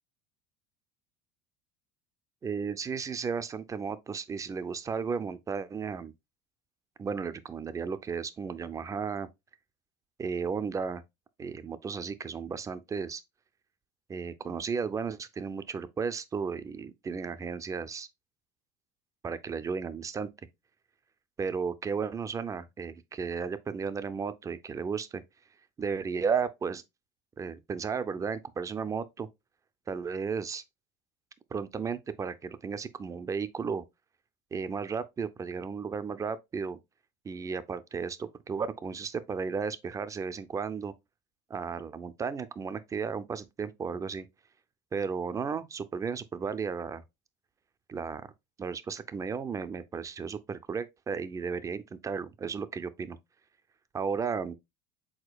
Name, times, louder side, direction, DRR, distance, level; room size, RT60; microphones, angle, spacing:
voice 1, 2.4-6.1 7.0-9.3 10.2-11.0 11.4-13.2 14.1-18.1 19.2-20.3 21.4-25.2 25.8-26.8 27.4-29.3 29.9-30.6 31.5-33.8 34.5-36.8 37.2-40.9 41.5-44.3 44.9-47.0 47.9-48.3 48.6-53.2 53.9-54.5, right 5 dB, 20° right, 0.4 m, -34 dB
4.9 x 3.9 x 2.2 m
supercardioid pair, 115°, 16 cm